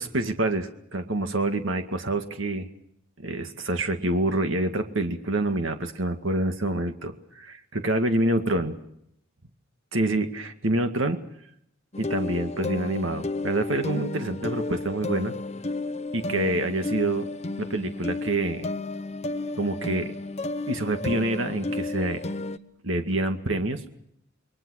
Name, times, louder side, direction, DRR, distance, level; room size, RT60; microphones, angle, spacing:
voice 1, 0.0-2.7 3.2-8.7 9.9-11.2 12.0-15.3 16.1-17.3 17.6-18.6 19.6-20.1 20.7-22.2 22.8-23.8, right 1 dB, 65° right, 7 dB, 2.1 m, -27 dB
sound 1, 11.9-22.6, left 2 dB, 30° left, 0.9 m, -32 dB
29.0 x 22.0 x 6.5 m, 0.74 s
head